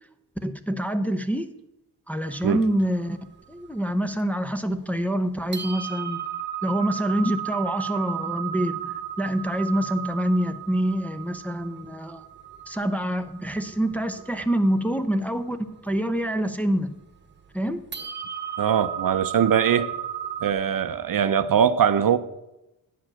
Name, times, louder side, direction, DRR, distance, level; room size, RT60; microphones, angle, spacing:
voice 1, 0.4-1.5 2.1-3.2 3.5-6.2 6.6-12.2 12.7-15.6 15.8-17.0 17.5-17.8, equal, 5° left, 0.5 m, -26 dB
sound 1, 2.2-4.6 5.1-5.2 5.5-20.5, right 10 dB, 25° right, 1.1 m, -35 dB
voice 2, 18.6-19.9 20.4-22.2, right 8 dB, 55° right, 0.6 m, -21 dB
10.0 x 4.9 x 7.5 m
wide cardioid pair, 95°, 40 cm